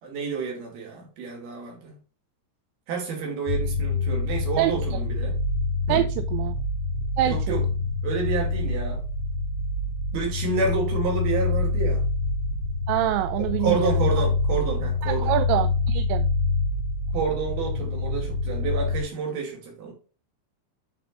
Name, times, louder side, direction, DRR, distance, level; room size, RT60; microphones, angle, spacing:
voice 1, 0.0-2.0 2.9-5.4 5.9-6.1 7.3-7.7 8.0-9.0 10.1-12.0 13.4-15.3 17.1-19.9, right 4 dB, 60° right, 0 dB, 4.6 m, -29 dB
sound 1, 3.5-19.0, left 3 dB, 65° left, 4.1 m, -26 dB
voice 2, 5.9-6.6 7.2-7.6 12.9-14.1 15.0-16.3, right 14 dB, 85° right, 10 dB, 2.8 m, -25 dB
10.5 x 5.5 x 2.6 m, 0.39 s
omnidirectional pair, 5.1 m